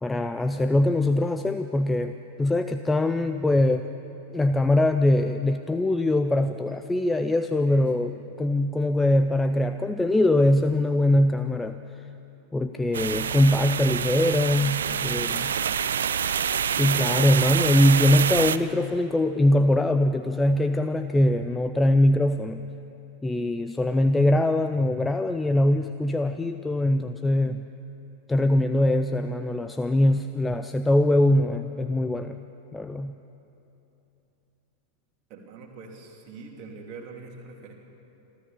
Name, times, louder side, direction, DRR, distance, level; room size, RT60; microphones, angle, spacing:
voice 1, 0.0-3.9 4.3-11.8 12.5-15.5 16.7-22.7 23.2-27.6 28.3-32.4 32.7-33.2, left 1 dB, 10° left, 9 dB, 0.5 m, -22 dB
voice 2, 7.7-8.1 14.5-15.9 35.3-37.7, right 4 dB, 40° right, 0 dB, 3.2 m, -44 dB
sound 1, 12.9-18.6, right 8 dB, 65° right, 0.6 m, -26 dB
27.0 x 13.5 x 7.3 m, 3.0 s
figure-of-eight pair, 90°, 0 cm